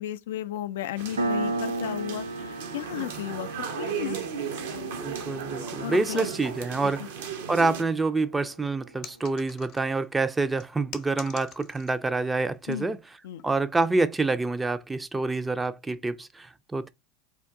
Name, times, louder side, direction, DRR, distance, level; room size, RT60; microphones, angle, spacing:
voice 1, 0.0-3.5 3.8-4.2 5.8-6.3 6.8-7.1 12.7-13.0 13.2-13.4, left 12 dB, 70° left, 0.3 m, -34 dB
sound 1, 1.0-7.8, right 7 dB, 70° right, 0.8 m, -36 dB
Piano, 1.2-8.3, right 2 dB, 90° right, 0.4 m, -35 dB
voice 2, 5.0-7.1 7.5-13.0 13.4-16.9, right 3 dB, 15° right, 0.4 m, -27 dB
sound 2, 9.0-10.1 10.6-12.1 12.4-12.8 13.4-13.6, left 9 dB, 50° left, 0.7 m, -45 dB
3.4 x 2.5 x 3.6 m
figure-of-eight pair, 80°, 0 cm